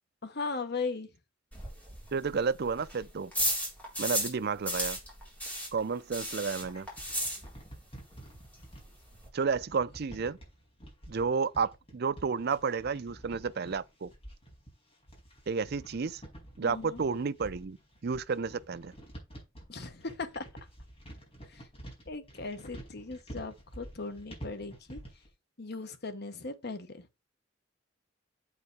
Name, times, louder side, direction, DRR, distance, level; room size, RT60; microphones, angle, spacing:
voice 1, 0.2-1.1 16.6-17.0 19.7-20.4 21.5-21.6 22.1-25.0 25.6-27.1, left 4 dB, 55° left, 1.2 m, -38 dB
sound 1, 1.5-4.4 4.6-7.9 8.1-8.2 8.5-8.6 8.8-9.3, equal, 10° left, 4.0 m, -34 dB
voice 2, 2.1-3.3 4.0-5.0 5.7-6.9 9.3-10.4 11.1-14.1 15.5-16.2 16.6-17.8 18.0-18.9, right 5 dB, 55° right, 0.5 m, -31 dB
sound 2, 6.6-25.3, right 1 dB, 30° left, 4.9 m, -49 dB
7.9 x 4.9 x 4.7 m
head